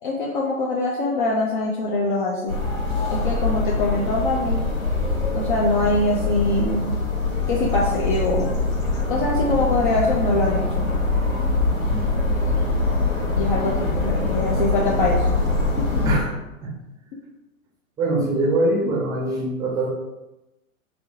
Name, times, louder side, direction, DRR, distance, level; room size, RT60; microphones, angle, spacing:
voice 1, 0.0-2.6 3.1-4.6 5.3-6.9 7.5-8.5 9.1-11.0 13.4-15.4 15.8-16.2, left 2 dB, 40° left, -3 dB, 0.5 m, -23 dB
outdoors generic ambient, 2.5-16.2, left 2 dB, 90° left, 1.2 m, -23 dB
voice 2, 18.0-19.9, right 2 dB, 10° right, -4 dB, 0.6 m, -23 dB
3.3 x 2.8 x 2.6 m, 0.95 s
figure-of-eight pair, 110°, 41 cm